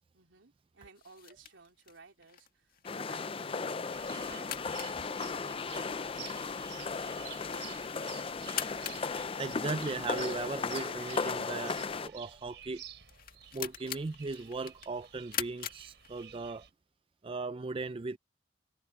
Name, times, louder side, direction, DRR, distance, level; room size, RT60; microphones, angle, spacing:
voice 1, 0.1-4.8 5.1-8.0, right 4 dB, 90° right, 3.4 m, -58 dB
sound 1, 1.0-16.6, left 10 dB, 50° left, 2.0 m, -45 dB
sound 2, 2.8-12.1, left 4 dB, 30° left, 0.5 m, -36 dB
sound 3, 3.9-16.7, right 10 dB, 65° right, 5.1 m, -51 dB
voice 2, 9.4-12.8 13.5-16.7 17.2-18.2, right 3 dB, 30° right, 0.4 m, -37 dB
head